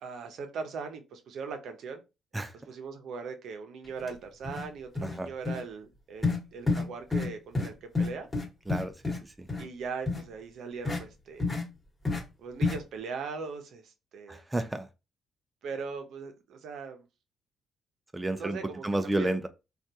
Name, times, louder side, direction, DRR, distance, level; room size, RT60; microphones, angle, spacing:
voice 1, 0.0-2.0 2.7-8.3 9.6-11.5 12.4-14.4 15.6-17.1 18.4-18.8 19.2-19.5, right 5 dB, 70° right, 0.6 m, -40 dB
sound 1, 4.0-4.1 4.4-4.7 5.0-5.2 5.5-5.6 6.2-6.4 6.7-6.9 7.1-7.3 7.6-7.7 8.0-9.2 9.5-9.6 10.1-10.2 10.9-11.0 11.4-11.6 12.1-12.2 12.6-12.8, left 3 dB, 20° left, 1.2 m, -29 dB
voice 2, 8.7-9.5 14.3-14.9 18.1-18.6 18.8-19.5, right 2 dB, 15° right, 0.4 m, -31 dB
3.3 x 2.3 x 2.7 m
cardioid pair, 90°, 0 cm